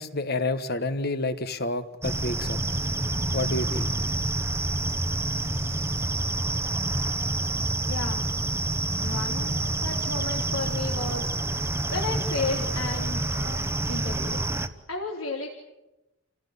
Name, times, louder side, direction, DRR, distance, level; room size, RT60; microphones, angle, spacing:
voice 1, 0.0-2.6 3.3-3.9, left 2 dB, 45° left, 1.5 m, -29 dB
sound 1, 2.0-14.7, right 2 dB, 10° right, 1.1 m, -28 dB
voice 2, 7.9-8.3 9.0-11.3 11.9-14.4 14.9-15.5, left 3 dB, 70° left, 3.4 m, -33 dB
29.5 x 17.5 x 9.7 m
head